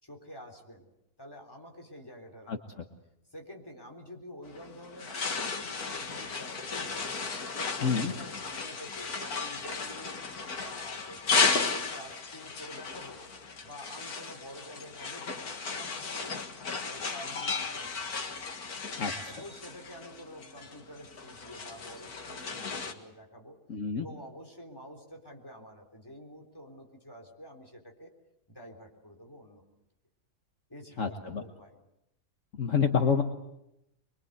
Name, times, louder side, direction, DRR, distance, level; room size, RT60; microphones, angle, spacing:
voice 1, 0.0-0.8 1.2-2.8 3.3-7.1 7.5-10.2 10.5-13.2 13.6-16.3 16.8-18.2 19.3-23.6 23.9-28.1 28.5-29.6 30.7-31.8, equal, 15° left, 1 dB, 3.7 m, -48 dB
sound 1, 4.5-22.9, left 4 dB, 70° left, 2.3 m, -34 dB
voice 2, 7.8-8.1 19.0-19.3 23.7-24.1 31.0-31.4 32.6-33.2, left 6 dB, 55° left, 5 dB, 1.7 m, -28 dB
24.0 x 23.5 x 8.1 m, 0.84 s
omnidirectional pair, 1.7 m